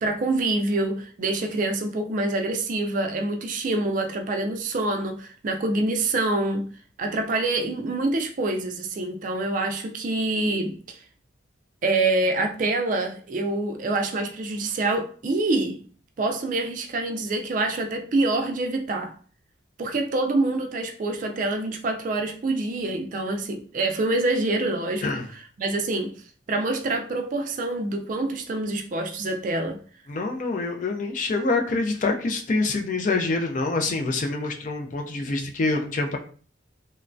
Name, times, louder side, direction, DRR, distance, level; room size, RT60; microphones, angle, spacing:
voice 1, 0.0-6.7 7.0-11.0 11.8-15.8 16.2-19.1 19.8-25.1 25.3-26.2 26.5-29.8, right 2 dB, 40° right, 0.3 m, -26 dB
voice 2, 30.1-36.2, left 3 dB, 40° left, 0.4 m, -26 dB
3.0 x 2.2 x 2.5 m
head